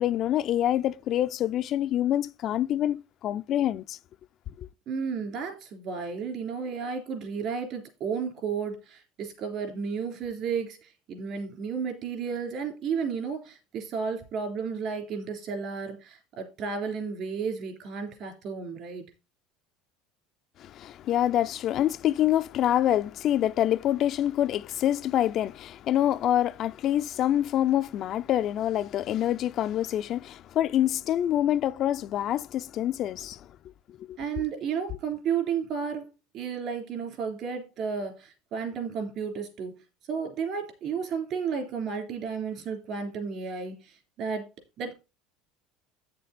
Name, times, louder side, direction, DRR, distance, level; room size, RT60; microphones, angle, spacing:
voice 1, 0.0-4.0 4.6-4.7 20.6-33.4 34.1-34.2, left 12 dB, 45° left, 0.4 m, -26 dB
voice 2, 4.9-19.1 34.2-44.5 44.8-44.9, right 6 dB, 50° right, 3.1 m, -33 dB
8.8 x 6.7 x 4.1 m
supercardioid pair, 130°, 0 cm